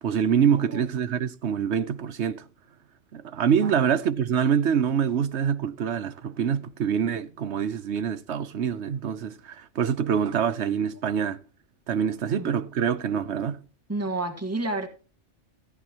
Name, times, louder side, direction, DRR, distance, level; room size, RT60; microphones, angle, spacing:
voice 1, 0.0-2.5 3.1-11.4 11.9-13.6, right 8 dB, 70° right, 1.1 m, -25 dB
voice 2, 13.9-14.9, right 2 dB, 15° right, 1.5 m, -30 dB
14.5 x 10.5 x 2.9 m
omnidirectional pair, 1.2 m